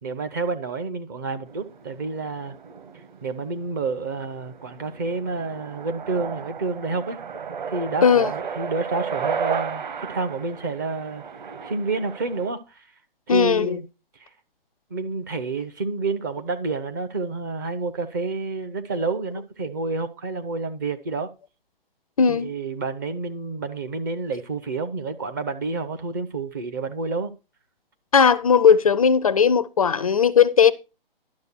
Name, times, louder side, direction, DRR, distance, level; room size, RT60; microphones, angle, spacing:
voice 1, 0.0-2.6 3.2-7.2 7.7-11.2 11.6-12.8 13.3-13.9 14.2-14.3 14.9-21.3 22.3-27.3, right 4 dB, 20° right, 0.5 m, -29 dB
sound 1, 1.5-12.5, right 6 dB, 50° right, 1.7 m, -34 dB
voice 2, 8.0-8.3 13.3-13.8 22.2-22.5 28.1-30.7, left 7 dB, 40° left, 0.4 m, -17 dB
11.5 x 6.5 x 4.4 m
figure-of-eight pair, 135°, 29 cm